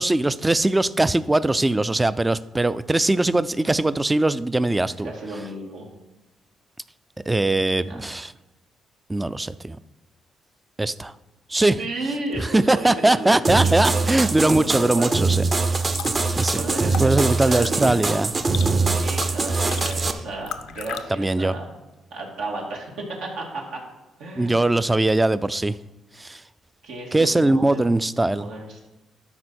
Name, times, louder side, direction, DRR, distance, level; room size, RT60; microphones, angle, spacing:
voice 1, 0.0-5.1 7.3-8.3 9.1-9.8 10.8-11.1 11.5-11.8 12.4-15.5 16.4-16.6 17.0-18.3 21.1-21.5 24.4-25.8 26.2-26.4 27.1-28.5, right 2 dB, 15° right, 16 dB, 0.3 m, -21 dB
voice 2, 5.0-5.9 7.8-8.0 11.5-14.5 14.8-15.2 16.5-18.0 18.5-21.7 22.1-23.8 24.2-24.7 26.8-27.9 28.2-28.9, right 2 dB, 90° right, -1 dB, 2.0 m, -34 dB
sound 1, 13.4-20.1, right 3 dB, 35° right, 0.7 m, -23 dB
sound 2, 15.7-21.0, left 9 dB, 85° left, 0.5 m, -38 dB
12.0 x 4.6 x 4.4 m, 1.0 s
cardioid pair, 90°, 0 cm